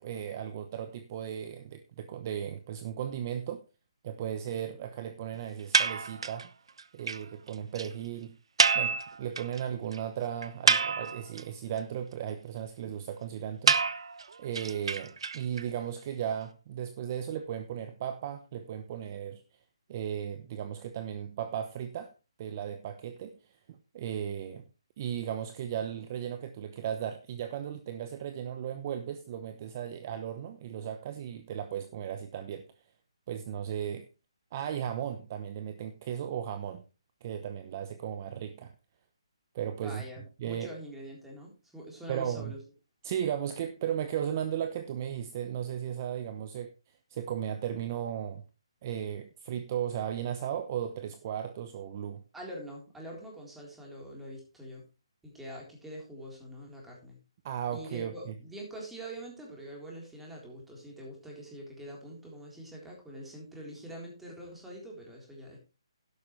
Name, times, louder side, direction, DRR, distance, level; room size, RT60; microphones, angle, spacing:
voice 1, 0.0-3.6 4.0-6.5 6.9-8.4 8.7-13.8 14.4-19.4 19.9-22.1 22.4-23.4 23.7-24.6 25.0-32.7 33.3-34.1 34.5-36.8 37.2-38.7 39.5-40.0 40.4-40.7 42.1-42.5 43.0-46.7 47.1-48.4 48.8-52.2 57.4-58.3, right 9 dB, 30° right, 10 dB, 0.9 m, -36 dB
sound 1, 5.7-6.5 6.8-6.9 7.1-7.2 7.5-7.6 7.8-7.9 8.6-9.6 9.9-10.0 10.4-11.4 13.7-15.6, right 5 dB, 70° right, 1.0 m, -27 dB
voice 2, 39.8-42.6 52.3-54.8 55.2-57.2 57.7-65.6, right 1 dB, 5° right, -2 dB, 3.8 m, -44 dB
12.0 x 11.0 x 3.2 m, 0.29 s
hypercardioid pair, 160°, 3 cm